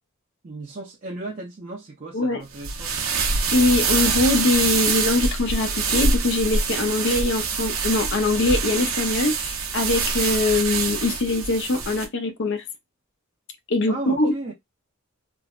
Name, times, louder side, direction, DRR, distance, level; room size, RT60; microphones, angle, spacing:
voice 1, 0.4-2.9 13.8-14.5, right 2 dB, 40° right, 0.6 m, -35 dB
sound 1, 2.5-12.1, right 5 dB, 85° right, 0.7 m, -25 dB
voice 2, 3.5-12.6 13.7-14.3, left 2 dB, 60° left, 0.7 m, -22 dB
3.3 x 2.1 x 2.4 m
head